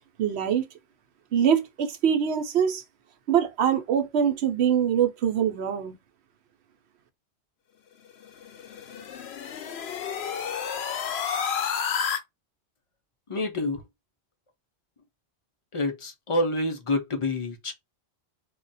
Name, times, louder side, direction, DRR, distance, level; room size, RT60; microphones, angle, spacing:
voice 1, 0.2-0.7 1.3-2.8 3.3-5.9, right 8 dB, 80° right, 0.9 m, -24 dB
sound 1, 8.2-12.2, left 7 dB, 75° left, 0.9 m, -31 dB
voice 2, 13.3-13.8 15.7-17.7, left 2 dB, 40° left, 0.5 m, -27 dB
2.4 x 2.2 x 3.9 m
omnidirectional pair, 1.1 m